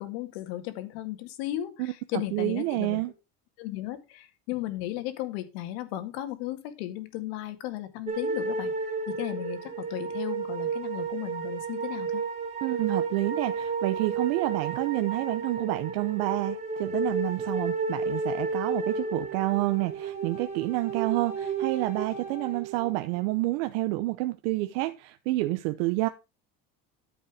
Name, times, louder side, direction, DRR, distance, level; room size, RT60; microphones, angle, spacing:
voice 1, 0.0-3.0 3.6-12.2, left 14 dB, 85° left, 2.0 m, -35 dB
voice 2, 1.8-3.1 12.6-26.1, right 19 dB, 80° right, 0.9 m, -29 dB
sound 1, 8.1-23.2, right 4 dB, 20° right, 2.9 m, -32 dB
13.0 x 5.5 x 4.9 m
cardioid pair, 150°, 30 cm